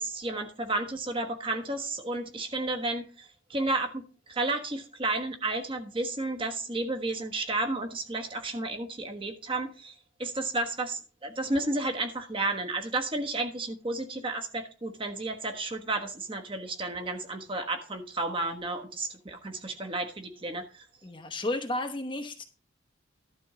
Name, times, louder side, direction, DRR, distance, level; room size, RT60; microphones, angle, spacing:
voice 1, 0.0-9.9 10.2-20.8, right 2 dB, 25° right, 5 dB, 1.3 m, -32 dB
voice 2, 21.0-22.4, left 2 dB, 25° left, 5 dB, 0.9 m, -32 dB
12.0 x 4.5 x 6.8 m, 0.33 s
head